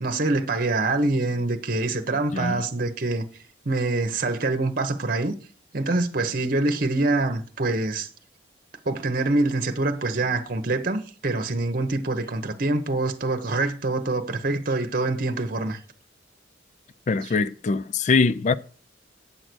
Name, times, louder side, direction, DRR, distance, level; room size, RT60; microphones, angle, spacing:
voice 1, 0.0-3.3 3.7-5.3 5.7-8.1 8.9-15.8, right 2 dB, 45° right, 0.9 m, -25 dB
voice 2, 17.1-18.5, left 4 dB, 40° left, 0.3 m, -22 dB
8.8 x 6.5 x 6.1 m
head